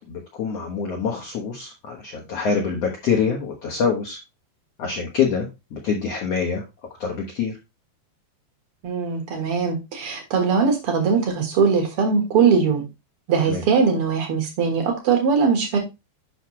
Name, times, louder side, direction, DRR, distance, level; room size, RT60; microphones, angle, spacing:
voice 1, 0.0-4.2 4.8-6.6 7.0-7.5 13.5-13.6, left 6 dB, 80° left, 1.4 m, -25 dB
voice 2, 8.8-12.8 13.3-15.8, right 5 dB, 65° right, 1.4 m, -20 dB
8.0 x 5.8 x 3.1 m
omnidirectional pair, 4.7 m